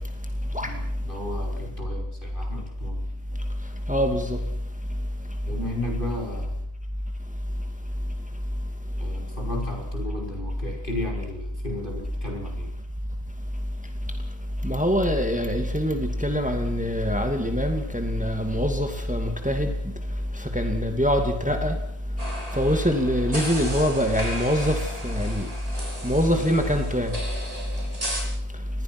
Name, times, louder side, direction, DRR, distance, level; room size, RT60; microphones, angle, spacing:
voice 1, 0.6-3.1 5.5-6.6 9.0-12.7, left 1 dB, 55° left, 1 dB, 5.7 m, -34 dB
voice 2, 3.9-4.4 14.6-19.7 20.5-21.7 22.5-24.8 25.0-25.5 26.0-27.1, equal, 5° right, 5 dB, 2.5 m, -24 dB
sound 1, 22.2-28.2, equal, 35° right, 6.8 m, -35 dB
26.5 x 20.0 x 6.1 m, 0.78 s
omnidirectional pair, 1.1 m